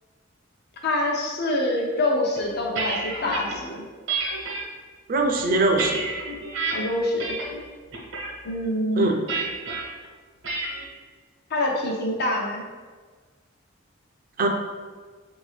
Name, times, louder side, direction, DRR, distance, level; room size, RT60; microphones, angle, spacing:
voice 1, 0.8-3.8 6.7-7.3 8.4-9.1 11.5-12.6, left 1 dB, 55° left, -1 dB, 0.7 m, -25 dB
sound 1, 2.4-3.6 4.1-4.6 5.2-6.7 7.2-7.6 7.9-8.3 9.3-9.8 10.4-10.8, right 4 dB, 75° right, 0.9 m, -30 dB
voice 2, 5.1-6.0 9.0-9.2 14.4-14.5, right 2 dB, 45° right, 3 dB, 0.5 m, -21 dB
4.5 x 2.7 x 3.2 m, 1.5 s
head